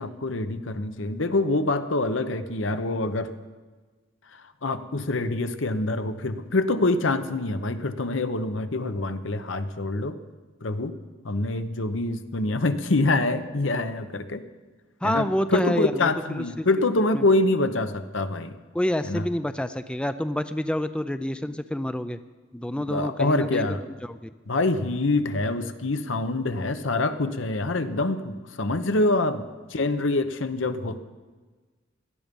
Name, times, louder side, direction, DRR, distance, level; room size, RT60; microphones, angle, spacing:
voice 1, 0.0-3.3 4.3-10.2 10.6-10.9 11.2-14.4 15.0-18.5 19.0-19.2 21.4-21.5 22.9-23.8 24.5-31.0, left 2 dB, 70° left, 10 dB, 1.0 m, -25 dB
voice 2, 15.0-16.1 16.3-16.7 17.1-17.2 18.7-22.2 22.5-23.7 24.0-24.3, left 1 dB, 5° left, 11 dB, 0.4 m, -28 dB
17.5 x 12.5 x 5.3 m, 1.3 s
head